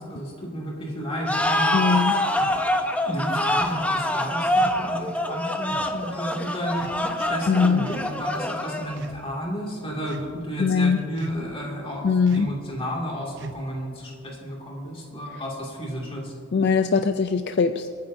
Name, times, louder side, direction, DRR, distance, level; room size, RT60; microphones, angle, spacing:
voice 1, 0.1-2.0 3.0-12.1 12.3-16.3, equal, 25° left, -3 dB, 2.2 m, -32 dB
sound 1, 1.3-9.1, left 1 dB, 5° left, 0.6 m, -25 dB
sound 2, 1.3-1.5 2.4-2.6 3.5-3.8 4.6-4.8 5.7-5.9 6.7-7.3 7.8-8.1 8.9-9.2 10.1-10.5 11.2-11.6 12.3-12.6 13.4-13.8, right 3 dB, 55° right, 0.6 m, -40 dB
voice 2, 1.7-2.1 7.5-7.8 10.6-11.0 12.0-12.5 16.5-17.9, left 5 dB, 50° left, 9 dB, 0.4 m, -21 dB
27.5 x 9.5 x 2.7 m, 2.5 s
head